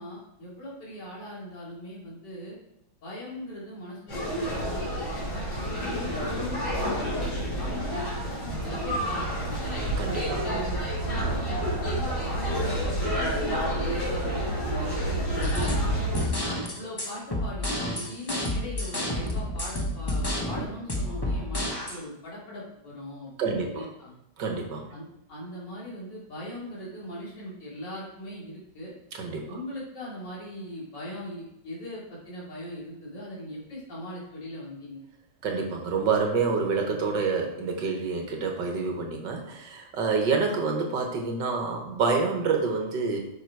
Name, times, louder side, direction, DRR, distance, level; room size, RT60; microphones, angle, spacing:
voice 1, 0.0-2.6 3.0-9.8 10.4-15.9 16.4-24.1 24.9-28.9 29.5-35.0, equal, 60° left, -6 dB, 3.3 m, -40 dB
sound 1, 4.1-16.3, right 1 dB, 75° left, 3.9 m, -29 dB
voice 2, 10.0-10.5 23.4-23.9 24.4-24.9 29.1-29.4 35.4-43.2, right 4 dB, 65° right, 2 dB, 1.9 m, -27 dB
sound 2, 15.4-22.0, left 1 dB, 20° left, 0.7 m, -30 dB
7.8 x 6.1 x 4.6 m, 0.85 s
omnidirectional pair, 2.1 m